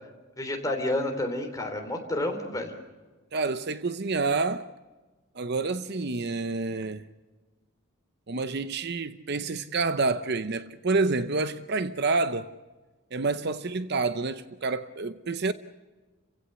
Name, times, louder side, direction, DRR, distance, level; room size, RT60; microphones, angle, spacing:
voice 1, 0.4-2.7, left 1 dB, 15° left, 3.4 m, -30 dB
voice 2, 3.3-4.7 5.3-7.1 8.3-12.5 13.1-15.5, right 3 dB, 50° right, 0.7 m, -28 dB
30.0 x 16.5 x 6.9 m
head